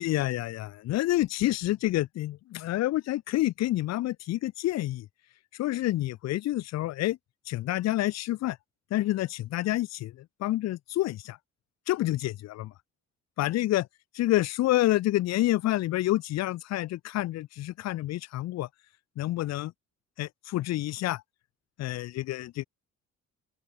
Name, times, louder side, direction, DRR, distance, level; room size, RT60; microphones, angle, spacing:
voice 1, 0.0-5.1 5.6-7.2 7.5-8.6 8.9-10.1 10.4-11.4 11.9-12.7 13.4-13.9 14.1-18.7 19.2-19.7 20.2-21.2 21.8-22.6, left 15 dB, 60° left, 0.5 m, -28 dB
open air
cardioid pair, 90°, 30 cm